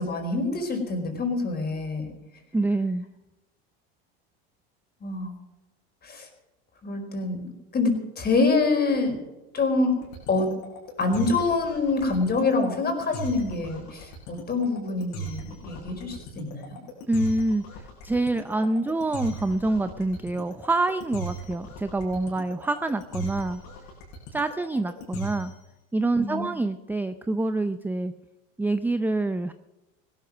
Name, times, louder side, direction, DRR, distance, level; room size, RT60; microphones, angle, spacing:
voice 1, 0.0-2.1 5.0-5.3 6.0-6.3 6.8-9.2 9.5-9.9 10.3-10.5 11.0-16.6 26.2-26.4, left 3 dB, 30° left, 4 dB, 4.7 m, -26 dB
voice 2, 2.5-3.0 17.1-23.6 24.3-25.5 25.9-28.1 28.6-29.5, right 2 dB, 5° right, 10 dB, 0.5 m, -26 dB
sound 1, 10.0-25.7, right 2 dB, 75° left, 7.2 m, -38 dB
16.5 x 12.5 x 6.1 m, 1.0 s
supercardioid pair, 110°, 31 cm